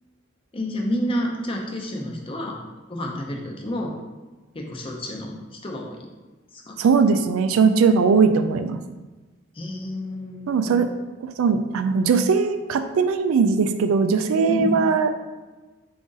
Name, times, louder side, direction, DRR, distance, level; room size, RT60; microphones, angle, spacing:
voice 1, 0.5-2.6 2.9-4.0 4.5-6.1 6.5-6.8 9.5-10.8 14.5-14.8, equal, 25° left, 1 dB, 0.5 m, -29 dB
voice 2, 6.8-8.8 10.5-10.9 11.2-15.2, right 5 dB, 90° right, 8 dB, 0.3 m, -20 dB
4.9 x 2.5 x 3.8 m, 1.2 s
head